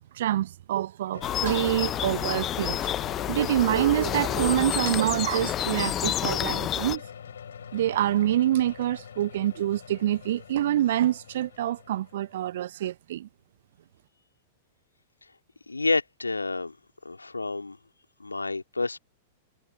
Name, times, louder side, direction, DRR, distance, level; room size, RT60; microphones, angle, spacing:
voice 1, 0.1-2.8 3.3-7.0 7.7-13.3, right 12 dB, 55° right, 1.2 m, -26 dB
sound 1, 1.1-12.4, left 8 dB, 65° left, 5.6 m, -44 dB
sound 2, 1.2-7.0, left 11 dB, 25° left, 0.8 m, -29 dB
voice 2, 15.7-16.8 17.0-17.8 18.2-19.0, left 3 dB, 80° left, 3.2 m, -29 dB
figure-of-eight pair, 100°, 0 cm